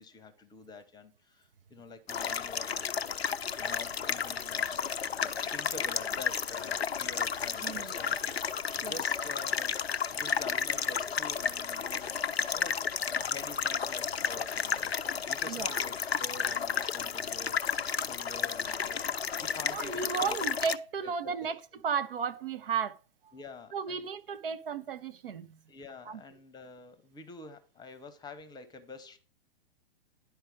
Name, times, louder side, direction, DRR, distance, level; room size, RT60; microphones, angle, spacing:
voice 1, 0.0-2.8 3.6-4.8 5.2-8.2 8.5-9.7 10.1-12.2 12.5-12.8 13.1-20.4 21.0-21.1 23.3-24.0 25.7-29.2, left 4 dB, 15° left, 0.8 m, -47 dB
sound 1, 2.1-20.8, left 6 dB, 90° left, 0.5 m, -32 dB
voice 2, 7.6-7.9 8.8-8.9 15.5-15.8 19.7-21.6 21.8-23.0 23.2-23.3 23.7-25.6 26.1-26.2, right 6 dB, 65° right, 0.8 m, -34 dB
10.5 x 4.6 x 4.8 m
figure-of-eight pair, 110°, 30 cm